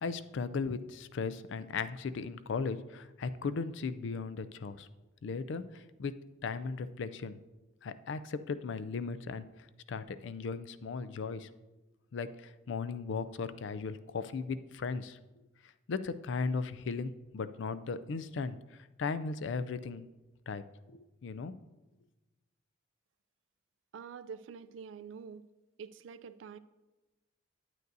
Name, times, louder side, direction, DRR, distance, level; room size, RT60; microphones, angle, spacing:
voice 1, 0.0-4.9 5.2-6.2 6.4-7.4 7.8-9.4 9.9-11.5 12.1-15.2 15.9-18.6 19.0-20.0 20.5-20.6 20.9-21.5, left 4 dB, 65° left, 13 dB, 0.4 m, -37 dB
voice 2, 23.9-25.5 25.8-26.6, right 6 dB, 70° right, 13 dB, 0.3 m, -46 dB
9.2 x 9.2 x 2.7 m, 1.1 s
head